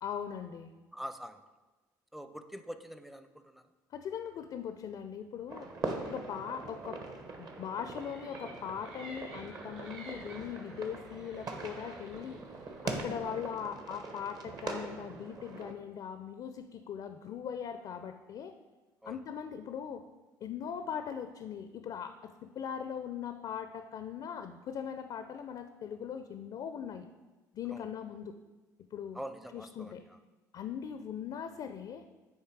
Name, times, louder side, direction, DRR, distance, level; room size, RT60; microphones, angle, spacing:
voice 1, 0.0-0.7 3.9-5.7 6.0-7.0 7.4-12.4 12.8-18.5 19.0-20.0 20.4-27.1 27.5-28.3 28.9-29.2 29.5-30.0 30.5-32.0, left 8 dB, 55° left, 9 dB, 0.4 m, -40 dB
voice 2, 0.9-1.4 2.1-3.6 19.0-19.2 27.7-27.8 29.1-29.9, equal, ahead, 9 dB, 0.5 m, -44 dB
sound 1, 5.5-15.7, right 3 dB, 45° right, 1.0 m, -42 dB
sound 2, 8.0-13.4, right 2 dB, 75° right, 1.5 m, -53 dB
8.1 x 3.1 x 4.6 m, 1.2 s
hypercardioid pair, 60°, 9 cm